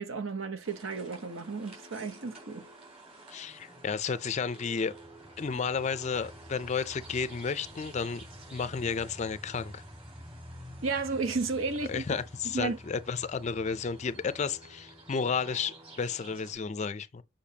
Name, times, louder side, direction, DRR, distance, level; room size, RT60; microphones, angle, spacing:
voice 1, 0.0-2.7 10.8-12.8, right 4 dB, 80° right, 0.9 m, -33 dB
sound 1, 0.6-16.6, right 1 dB, 30° right, 3.8 m, -49 dB
voice 2, 3.3-5.0 5.4-8.2 8.5-9.8 11.9-17.2, left 5 dB, 35° left, 0.4 m, -32 dB
6.9 x 5.2 x 2.8 m
head